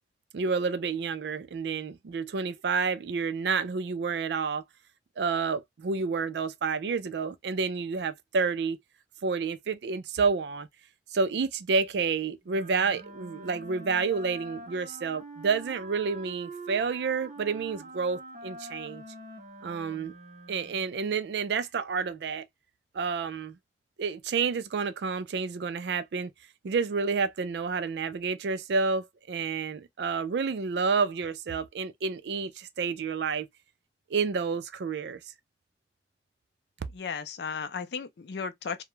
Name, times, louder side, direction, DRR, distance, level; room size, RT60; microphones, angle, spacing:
voice 1, 0.3-4.6 5.2-8.8 9.2-10.7 11.1-19.0 19.6-20.1 20.5-22.5 22.9-23.6 24.0-26.3 26.6-33.5 34.1-35.2, right 5 dB, 75° right, 0.4 m, -29 dB
Wind instrument woodwind instrument, 12.4-21.0, right 2 dB, 45° right, 0.7 m, -45 dB
voice 2, 36.9-38.8, left 5 dB, 75° left, 0.4 m, -35 dB
2.3 x 2.1 x 3.0 m
head